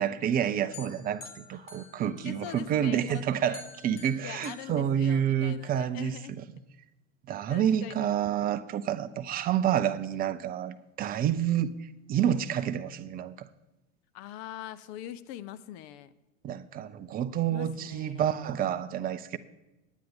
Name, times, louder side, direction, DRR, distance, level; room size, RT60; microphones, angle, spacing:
voice 1, 0.0-6.4 7.3-13.5 16.4-19.4, right 9 dB, 25° right, 0.5 m, -29 dB
sound 1, 0.7-2.7 3.1-5.6, left 4 dB, 80° left, 2.1 m, -50 dB
voice 2, 2.2-3.6 4.2-6.4 7.5-8.1 14.1-16.1 17.5-18.4, left 11 dB, 45° left, 0.6 m, -43 dB
9.3 x 9.2 x 5.1 m
hypercardioid pair, 95°, 39 cm